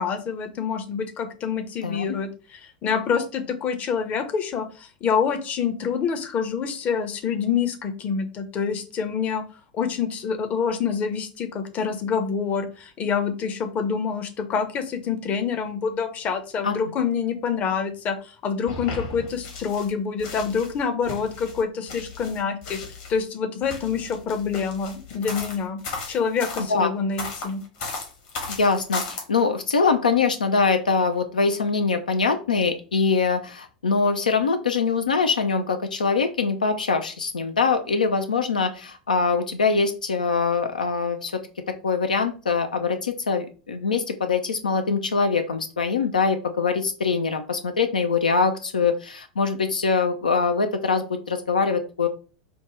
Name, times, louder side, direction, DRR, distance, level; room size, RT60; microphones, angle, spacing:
voice 1, 0.0-9.4 9.7-22.8 23.1-25.8 26.1-27.6, left 6 dB, 35° left, 8 dB, 0.7 m, -26 dB
sound 1, 18.7-19.9 20.2-23.2 23.6-26.7 27.2-29.2, left 3 dB, 55° left, 1.3 m, -36 dB
voice 2, 28.5-41.4 41.8-52.1, left 4 dB, 75° left, 7 dB, 0.4 m, -23 dB
5.2 x 2.2 x 3.0 m, 0.37 s
figure-of-eight pair, 85°, 4 cm